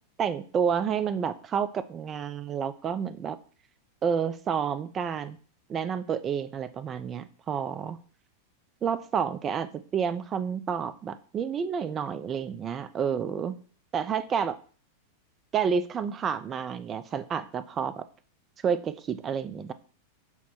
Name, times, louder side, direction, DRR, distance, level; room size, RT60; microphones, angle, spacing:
voice 1, 0.2-3.4 4.0-5.4 5.7-8.0 8.8-13.6 13.9-14.6 15.5-18.0 18.6-19.7, right 7 dB, 30° right, 13 dB, 0.4 m, -29 dB
5.7 x 2.1 x 4.4 m, 0.42 s
figure-of-eight pair, 95°, 0 cm